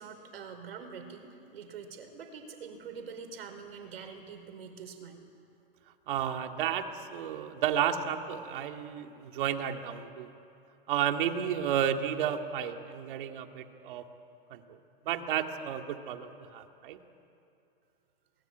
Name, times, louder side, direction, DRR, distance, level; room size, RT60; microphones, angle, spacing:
voice 1, 0.0-5.2, right 6 dB, 80° right, 6 dB, 4.8 m, -45 dB
voice 2, 6.1-6.8 7.1-10.3 10.9-14.0 14.5-14.8 15.0-17.0, right 9 dB, 60° right, 5 dB, 2.3 m, -32 dB
28.5 x 21.0 x 9.2 m, 2.6 s
hypercardioid pair, 145°, 29 cm